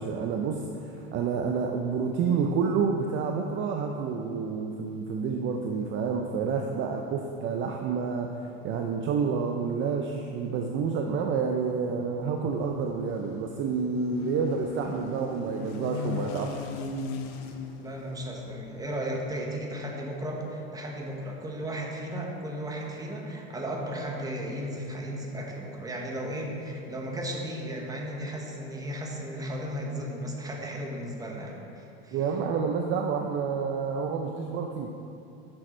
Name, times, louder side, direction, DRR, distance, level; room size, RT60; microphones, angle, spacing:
voice 1, 0.0-8.4 8.6-16.7 32.1-34.9, right 5 dB, 40° right, 3 dB, 0.5 m, -29 dB
sound 1, 11.7-19.3, left 3 dB, 55° left, 0.8 m, -39 dB
voice 2, 17.8-32.2, equal, 10° right, 0 dB, 1.0 m, -35 dB
7.6 x 6.1 x 4.3 m, 2.7 s
supercardioid pair, 130°, 32 cm